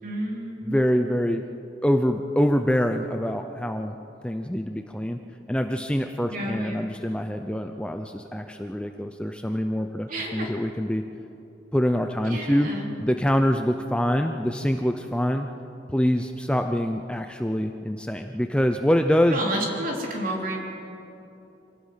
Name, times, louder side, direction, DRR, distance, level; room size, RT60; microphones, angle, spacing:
voice 1, 0.0-0.8 6.3-6.9 10.1-10.5 12.3-12.9 19.3-20.6, right 1 dB, 45° right, -1 dB, 3.8 m, -30 dB
voice 2, 0.6-1.4 1.8-4.0 4.2-5.2 5.5-11.0 11.7-12.7 13.0-15.5 15.9-19.4, equal, 5° left, 6 dB, 0.5 m, -25 dB
26.0 x 17.5 x 5.7 m, 2.8 s
head